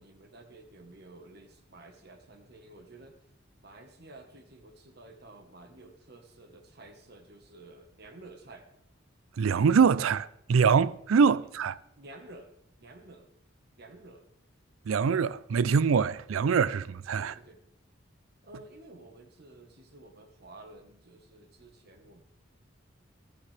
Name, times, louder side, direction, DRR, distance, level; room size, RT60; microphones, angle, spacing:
voice 1, 0.0-3.2 3.6-8.7 11.3-11.5 12.0-12.5 12.8-13.3 13.8-14.3 17.2-17.6 18.4-22.2, right 2 dB, 50° right, 1.3 m, -51 dB
voice 2, 9.4-11.8 14.9-17.4, right 6 dB, 85° right, 0.4 m, -24 dB
14.5 x 13.5 x 3.4 m
head